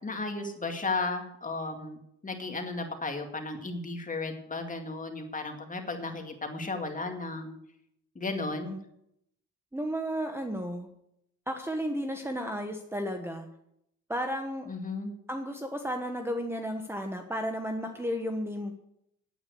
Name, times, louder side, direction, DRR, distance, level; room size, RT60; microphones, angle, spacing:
voice 1, 0.0-2.0 2.2-7.6 8.2-8.8 14.7-15.1, left 3 dB, 25° left, 4 dB, 2.3 m, -34 dB
voice 2, 9.7-10.9 11.5-13.5 14.1-14.7 15.3-18.8, equal, 10° right, 5 dB, 1.2 m, -33 dB
9.2 x 8.9 x 8.2 m, 0.77 s
cardioid pair, 90°, 30 cm